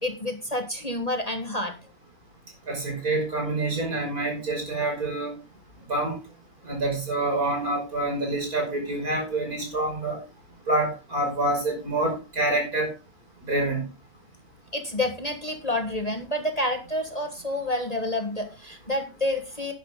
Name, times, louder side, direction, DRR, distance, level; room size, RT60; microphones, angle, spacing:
voice 1, 0.0-1.8 14.7-19.7, left 1 dB, 25° left, 5 dB, 1.6 m, -29 dB
voice 2, 2.7-5.3 5.9-6.2 6.7-10.2 10.7-12.9 13.4-13.8, right 2 dB, 75° right, 1 dB, 6.3 m, -27 dB
12.0 x 10.5 x 3.7 m, 0.29 s
omnidirectional pair, 1.6 m